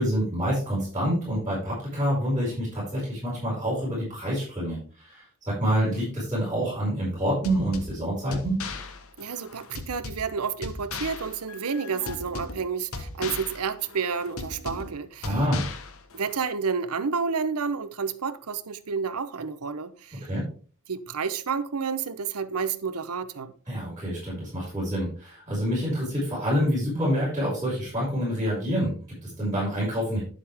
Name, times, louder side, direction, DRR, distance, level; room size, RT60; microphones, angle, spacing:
voice 1, 0.0-8.6 15.2-15.6 20.2-20.4 23.7-30.2, equal, 15° right, 5.2 m, -27 dB
sound 1, 7.4-16.4, left 3 dB, 65° left, 1.1 m, -38 dB
voice 2, 9.2-15.4 16.1-20.3 20.9-23.5, right 5 dB, 80° right, 0.8 m, -30 dB
10.0 x 7.6 x 3.4 m
head